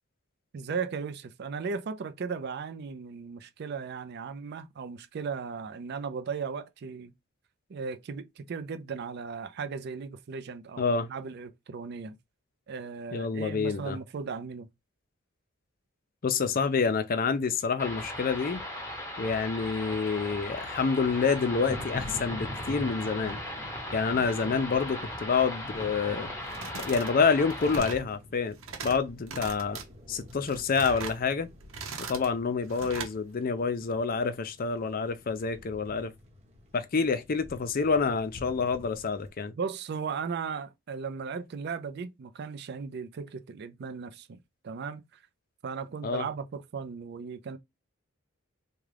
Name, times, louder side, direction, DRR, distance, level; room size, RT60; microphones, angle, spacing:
voice 1, 0.5-7.1 7.7-12.2 12.7-14.7 39.6-44.4 44.6-45.0 45.6-47.6, right 5 dB, 50° right, 0.4 m, -36 dB
voice 2, 10.8-11.1 13.1-14.0 16.2-18.6 19.2-23.4 23.9-26.3 26.7-28.5 28.8-29.8 30.1-31.5 32.0-36.1 36.7-39.5 46.0-46.3, left 5 dB, 45° left, 0.4 m, -28 dB
sound 1, 17.8-27.8, left 1 dB, 15° left, 0.9 m, -38 dB
Thunder, 20.1-39.3, left 1 dB, 35° right, 1.1 m, -47 dB
sound 2, 26.4-27.1 27.4-28.1 28.5-29.0 29.3-29.8 30.3-31.2 31.6-32.3 32.7-33.1, right 4 dB, 75° right, 0.8 m, -39 dB
3.6 x 2.2 x 3.3 m
head